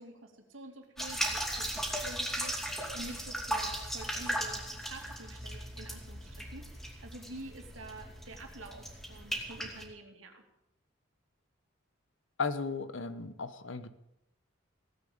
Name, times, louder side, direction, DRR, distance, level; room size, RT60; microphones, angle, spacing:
voice 1, 0.0-10.4, right 2 dB, 80° right, 3 dB, 2.9 m, -48 dB
sound 1, 1.0-9.8, right 1 dB, ahead, 2.7 m, -37 dB
voice 2, 12.4-13.9, left 4 dB, 70° left, 12 dB, 1.1 m, -35 dB
17.0 x 8.6 x 8.7 m, 0.85 s
head